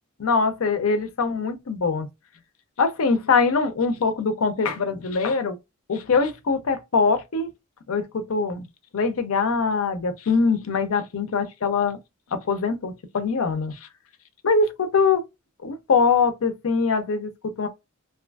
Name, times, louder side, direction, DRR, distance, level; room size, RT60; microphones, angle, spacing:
voice 1, 0.2-2.1 2.8-5.6 5.9-7.5 7.9-8.7 8.9-12.0 12.3-13.7 14.4-15.2 15.6-17.7, left 4 dB, 75° left, 0.5 m, -23 dB
2.6 x 2.4 x 2.3 m
head